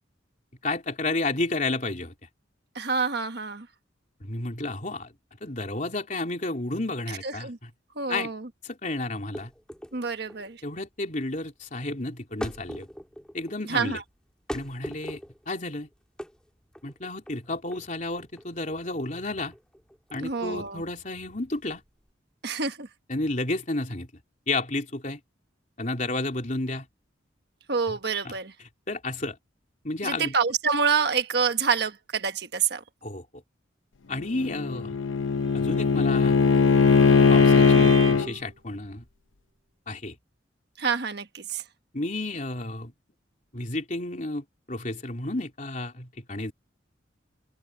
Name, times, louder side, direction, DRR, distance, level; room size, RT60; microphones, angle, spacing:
voice 1, 0.6-2.1 4.2-5.1 5.4-7.7 8.1-8.3 8.6-9.5 10.6-12.9 13.3-14.0 14.5-15.2 15.5-15.9 16.8-19.5 20.1-21.8 23.1-24.1 24.5-25.2 25.8-26.9 28.9-29.4 29.8-30.3 33.0-33.3 34.1-35.0 35.5-36.4 37.3-39.0 39.9-40.2 41.9-42.9 43.5-46.5, left 2 dB, 40° left, 3.5 m, -31 dB
voice 2, 2.7-3.7 7.2-7.6 7.9-8.5 9.9-10.6 13.7-14.0 20.2-20.8 22.4-22.9 27.7-28.5 30.0-32.8 40.8-41.6, right 5 dB, 55° right, 1.4 m, -27 dB
sound 1, 9.3-22.1, equal, 5° left, 3.3 m, -42 dB
Bowed string instrument, 34.2-38.3, left 5 dB, 90° left, 0.7 m, -19 dB
Bowed string instrument 2, 35.4-38.4, right 3 dB, 80° right, 1.7 m, -37 dB
head